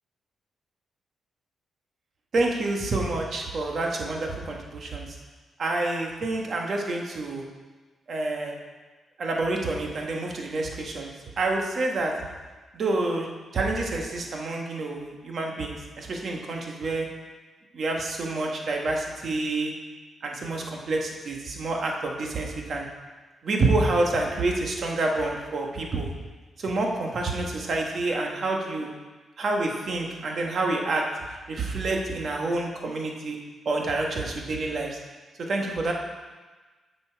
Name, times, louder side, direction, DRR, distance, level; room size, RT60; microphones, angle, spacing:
voice 1, 2.3-5.1 5.6-7.4 8.1-8.6 9.2-12.1 12.7-13.3 13.5-17.1 17.7-19.7 20.2-22.9 23.4-26.1 26.6-28.9 29.4-31.0 31.5-33.4 33.6-35.0 35.4-35.9, right 2 dB, 45° right, 1 dB, 1.3 m, -28 dB
9.5 x 6.9 x 4.6 m, 1.3 s
wide cardioid pair, 165°, 0 cm